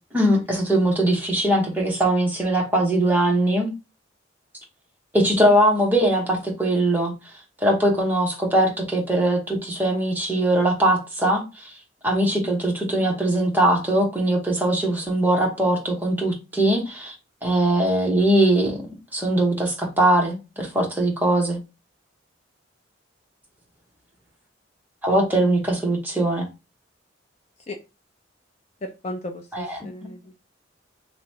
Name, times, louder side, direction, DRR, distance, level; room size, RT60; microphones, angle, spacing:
voice 1, 0.1-3.7 5.1-7.1 7.6-11.4 12.0-17.1 17.4-18.8 19.1-21.6 25.0-26.4 29.5-29.9, right 1 dB, 10° right, 1.0 m, -21 dB
voice 2, 28.8-30.2, left 1 dB, 35° left, 0.5 m, -35 dB
2.9 x 2.7 x 4.4 m
head